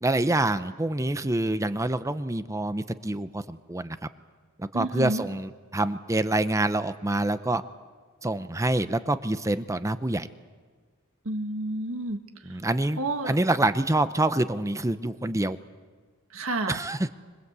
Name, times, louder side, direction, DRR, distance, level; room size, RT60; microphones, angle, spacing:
voice 1, 0.0-4.0 4.6-7.6 8.2-10.3 12.4-15.6 16.7-17.1, right 2 dB, 15° right, 12 dB, 0.7 m, -26 dB
voice 2, 4.7-5.2 11.3-12.2 13.0-13.4 16.3-16.8, right 2 dB, 70° right, 7 dB, 1.8 m, -30 dB
26.5 x 21.0 x 8.2 m, 1.5 s
head